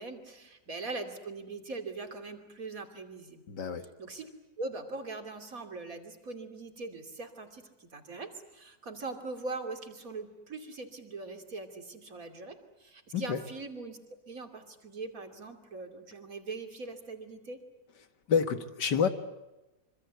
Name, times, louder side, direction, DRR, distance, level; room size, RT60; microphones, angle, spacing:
voice 1, 0.0-3.4 4.0-4.3 4.6-12.5 12.8-14.0 14.3-17.6, right 3 dB, 55° right, 6 dB, 3.3 m, -41 dB
voice 2, 3.5-3.9 13.1-13.4 18.3-19.1, left 6 dB, 90° left, 9 dB, 2.3 m, -28 dB
26.0 x 25.5 x 8.3 m, 1.0 s
omnidirectional pair, 1.8 m